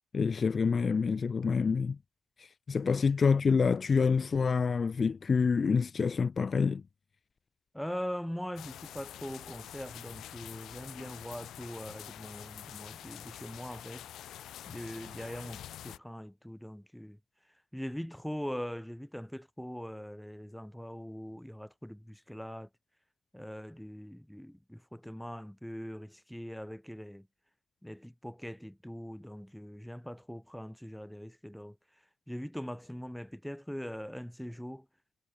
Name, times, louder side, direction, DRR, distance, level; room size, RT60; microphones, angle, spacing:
voice 1, 0.1-2.0 2.4-6.8, left 5 dB, 40° left, 0.5 m, -27 dB
voice 2, 7.7-14.1 14.7-17.2 17.7-22.7 23.3-27.3 27.8-31.8 32.3-34.9, equal, ahead, 2.3 m, -42 dB
sound 1, 8.6-16.0, left 12 dB, 75° left, 5.7 m, -46 dB
cardioid pair, 90°, 0 cm